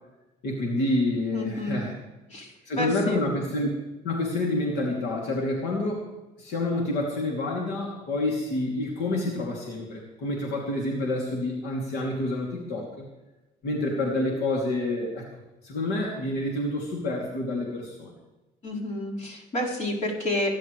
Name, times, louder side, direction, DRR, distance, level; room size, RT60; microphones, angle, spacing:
voice 1, 0.4-2.0 2.7-3.7 4.0-6.0 6.4-13.0 13.6-15.3 15.6-18.1, left 2 dB, 80° left, -1 dB, 3.0 m, -28 dB
voice 2, 1.3-1.9 2.3-3.2 18.6-20.5, left 1 dB, 45° left, -3 dB, 4.8 m, -30 dB
24.5 x 11.0 x 3.3 m, 1.0 s
cardioid pair, 110°, 17 cm